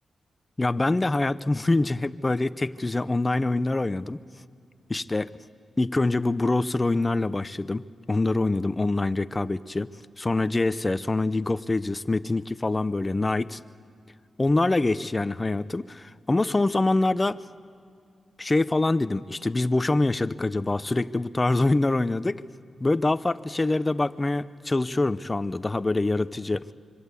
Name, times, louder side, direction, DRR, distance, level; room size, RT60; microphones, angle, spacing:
voice 1, 0.6-4.2 4.9-5.3 5.8-9.9 10.2-13.6 14.4-17.4 18.4-22.4 22.8-26.7, left 2 dB, 25° left, 14 dB, 0.7 m, -25 dB
26.0 x 24.0 x 8.4 m, 2.4 s
cardioid pair, 90°, 0 cm